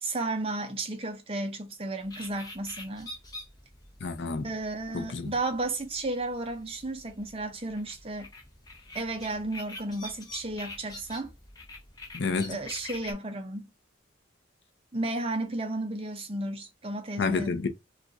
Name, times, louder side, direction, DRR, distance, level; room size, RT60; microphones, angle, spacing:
voice 1, 0.0-3.1 4.4-8.3 8.9-11.3 12.5-13.7 14.9-17.6, right 2 dB, 30° right, 0.5 m, -33 dB
sound 1, 2.0-13.1, left 2 dB, 20° left, 0.8 m, -46 dB
voice 2, 4.0-4.5 4.9-5.3 12.1-12.6 17.2-17.7, left 4 dB, 55° left, 0.5 m, -29 dB
2.4 x 2.4 x 3.9 m
head